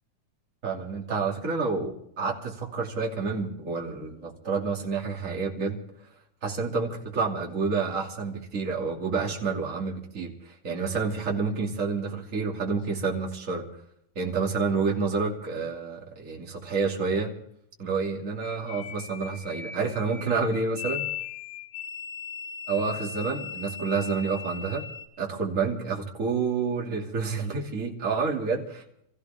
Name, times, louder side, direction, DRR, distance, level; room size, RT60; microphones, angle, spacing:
voice 1, 0.6-5.8 6.4-13.7 14.1-17.3 17.8-21.1 22.7-24.8 25.2-28.8, right 4 dB, 25° right, 0 dB, 2.6 m, -29 dB
sound 1, 18.4-25.1, left 8 dB, 60° left, 3.0 m, -38 dB
26.5 x 15.0 x 3.6 m, 0.73 s
omnidirectional pair, 4.3 m